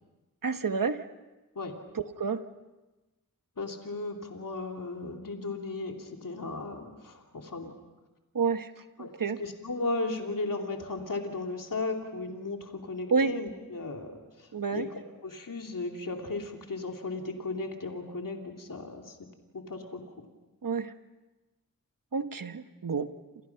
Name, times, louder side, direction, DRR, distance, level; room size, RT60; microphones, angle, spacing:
voice 1, 0.4-1.0 1.9-2.4 8.3-8.7 9.0-9.4 13.1-13.3 14.5-14.9 20.6-20.9 22.1-23.1, right 5 dB, 70° right, 9 dB, 1.4 m, -29 dB
voice 2, 3.6-7.7 9.0-9.1 9.4-19.2 19.5-20.0, left 3 dB, 70° left, 2 dB, 2.9 m, -36 dB
29.0 x 28.5 x 5.9 m, 1.1 s
wide cardioid pair, 65°, 34 cm